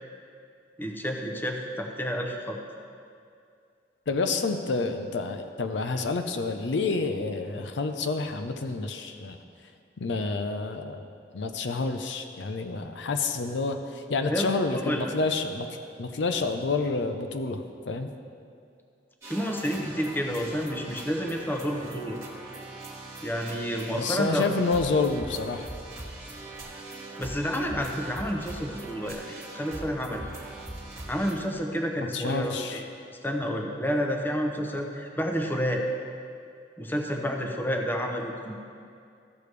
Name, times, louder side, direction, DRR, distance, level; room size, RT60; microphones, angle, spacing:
voice 1, 0.8-2.6 14.3-15.1 19.3-22.2 23.2-24.5 27.2-30.2 31.1-32.8 33.2-35.8 36.8-38.6, equal, 10° left, 2 dB, 0.7 m, -30 dB
voice 2, 4.1-9.4 10.0-11.0 11.3-15.7 16.0-18.1 24.0-25.7 32.0-32.8, left 3 dB, 80° left, 7 dB, 0.6 m, -29 dB
sound 1, 19.2-31.3, right 2 dB, 15° right, 1.4 m, -41 dB
14.0 x 6.7 x 3.3 m, 2.4 s
head